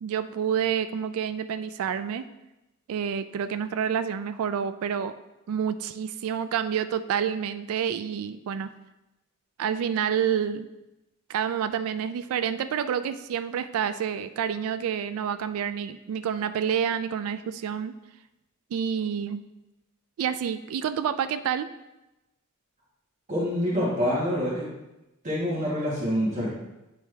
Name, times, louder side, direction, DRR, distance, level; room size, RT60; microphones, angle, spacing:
voice 1, 0.0-2.3 2.9-5.1 5.5-8.7 9.6-10.7 11.3-17.9 18.7-19.4 20.2-21.7, right 8 dB, 65° right, 13 dB, 0.3 m, -28 dB
voice 2, 23.3-24.7 25.2-26.5, equal, 35° right, -8 dB, 1.5 m, -26 dB
9.1 x 3.3 x 3.3 m, 0.97 s
head